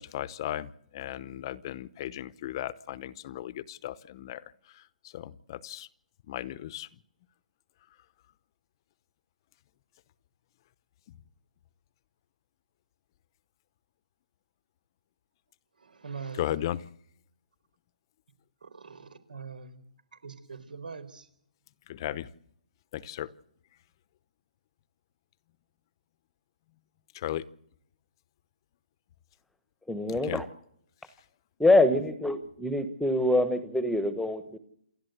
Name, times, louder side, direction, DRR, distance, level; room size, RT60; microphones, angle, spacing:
voice 1, 0.0-5.9 6.3-6.9 16.3-16.8 21.9-22.3 22.9-23.3 27.1-27.4 30.2-30.4, left 12 dB, 30° left, 19 dB, 0.8 m, -36 dB
voice 2, 15.8-16.5 18.6-19.8 20.1-21.3, right 5 dB, 90° right, 12 dB, 4.5 m, -43 dB
voice 3, 29.9-30.4 31.6-34.6, left 2 dB, ahead, 12 dB, 1.1 m, -25 dB
28.5 x 12.0 x 8.0 m, 0.70 s
hypercardioid pair, 165°, 5 cm